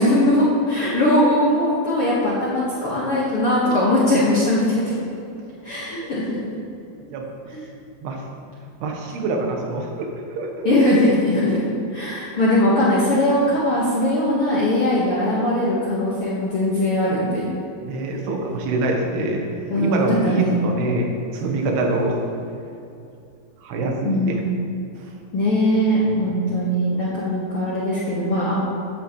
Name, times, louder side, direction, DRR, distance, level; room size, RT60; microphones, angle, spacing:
voice 1, 0.0-5.0 5.6-6.6 7.5-7.6 10.6-11.6 11.9-17.5 19.7-20.7 24.0-24.6 25.3-28.6, left 1 dB, 60° left, -7 dB, 1.4 m, -20 dB
voice 2, 8.8-10.7 17.8-19.4 19.7-22.2 23.6-24.4 26.1-26.3, right 2 dB, 90° right, 1 dB, 3.3 m, -25 dB
13.5 x 9.1 x 3.1 m, 2.7 s
omnidirectional pair, 4.5 m